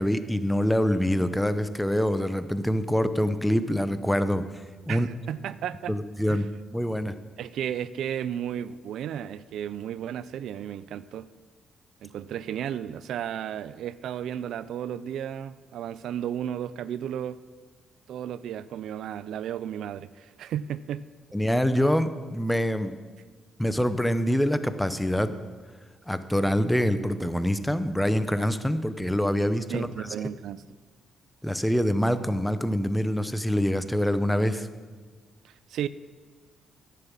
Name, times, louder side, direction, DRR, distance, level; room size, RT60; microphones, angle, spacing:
voice 1, 0.0-4.4 4.9-5.1 5.9-7.1 21.3-22.9 23.6-25.3 26.1-30.1 31.4-34.7, equal, 5° left, 11 dB, 0.6 m, -25 dB
voice 2, 4.9-6.0 6.3-6.4 7.4-11.3 12.0-17.4 18.1-21.0 29.7-30.6 35.4-35.9, right 10 dB, 80° right, 16 dB, 0.3 m, -33 dB
11.0 x 6.9 x 7.4 m, 1.4 s
cardioid pair, 105°, 0 cm